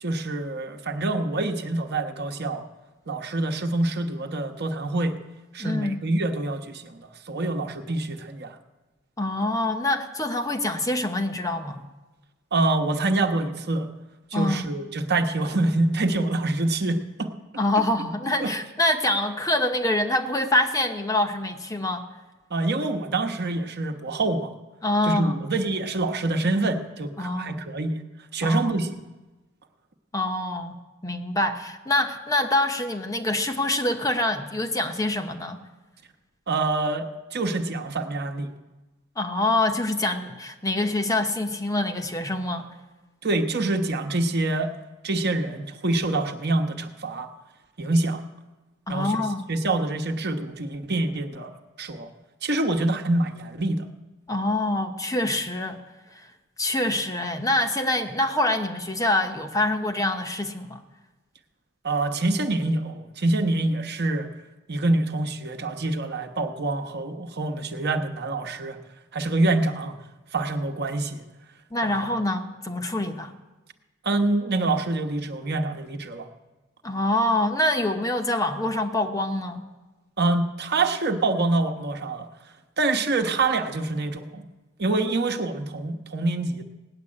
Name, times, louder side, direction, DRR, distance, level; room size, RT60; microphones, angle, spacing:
voice 1, 0.0-2.6 3.1-5.2 5.5-8.6 12.5-13.9 14.3-17.3 18.4-18.5 22.5-24.5 25.0-28.0 28.3-28.9 36.5-38.5 43.2-44.7 45.0-47.3 47.8-48.2 48.9-49.2 49.5-52.1 52.4-53.8 61.8-64.3 64.7-68.8 69.1-70.0 70.3-71.2 71.8-72.1 74.0-76.3 80.2-82.3 82.8-84.5 84.8-86.6, right 2 dB, 50° right, 5 dB, 1.1 m, -26 dB
voice 2, 5.6-6.0 9.2-11.8 14.3-14.7 17.6-22.0 24.8-25.4 27.2-27.6 28.4-28.7 30.1-35.6 39.2-42.7 48.9-49.5 54.3-55.8 56.6-60.8 71.7-73.3 76.8-79.6, left 1 dB, 15° left, 6 dB, 0.8 m, -25 dB
17.5 x 7.5 x 9.7 m, 1.2 s
head